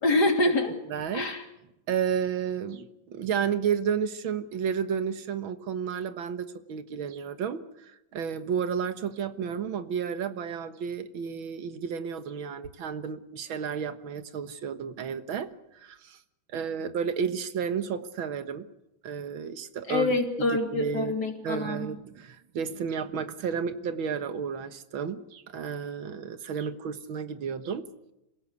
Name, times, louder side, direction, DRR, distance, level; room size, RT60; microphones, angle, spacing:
voice 1, 0.0-0.7 1.1-1.4 19.9-21.9, left 2 dB, 55° left, 4 dB, 3.6 m, -26 dB
voice 2, 0.9-1.3 1.9-16.2 16.5-18.7 19.0-21.1 21.4-27.9, right 7 dB, 85° right, 11 dB, 2.1 m, -32 dB
27.0 x 17.0 x 8.2 m, 0.90 s
omnidirectional pair, 2.2 m